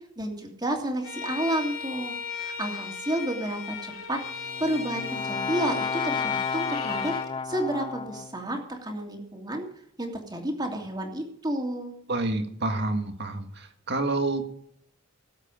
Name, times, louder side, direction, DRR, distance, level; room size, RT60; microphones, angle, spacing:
voice 1, 0.2-7.1 7.4-9.7 10.0-12.0, right 1 dB, 20° right, 2 dB, 2.8 m, -31 dB
Bowed string instrument, 1.0-7.3, left 6 dB, 75° left, 3.4 m, -35 dB
Brass instrument, 4.3-8.5, left 5 dB, 25° left, 0.4 m, -32 dB
voice 2, 12.1-14.4, right 2 dB, 55° right, 6 dB, 1.9 m, -28 dB
18.5 x 8.2 x 5.1 m, 0.68 s
head